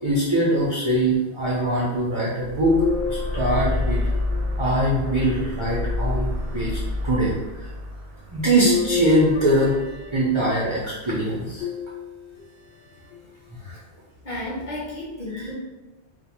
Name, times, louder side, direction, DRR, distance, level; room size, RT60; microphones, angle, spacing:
voice 1, 0.0-2.8 3.1-4.0 4.6-7.7 8.3-9.8 10.1-11.7 13.5-13.8 15.3-15.5, right 1 dB, 50° right, -6 dB, 0.3 m, -22 dB
sound 1, 2.4-10.7, left 2 dB, 90° right, 0.9 m, -29 dB
sound 2, 2.6-4.9 5.6-6.6 8.6-10.7 11.6-12.5 13.1-13.2 14.6-14.7, left 7 dB, 70° left, 0.9 m, -31 dB
voice 2, 14.2-15.5, left 1 dB, 45° left, -7 dB, 0.7 m, -32 dB
2.5 x 2.1 x 2.9 m, 1.1 s
omnidirectional pair, 1.2 m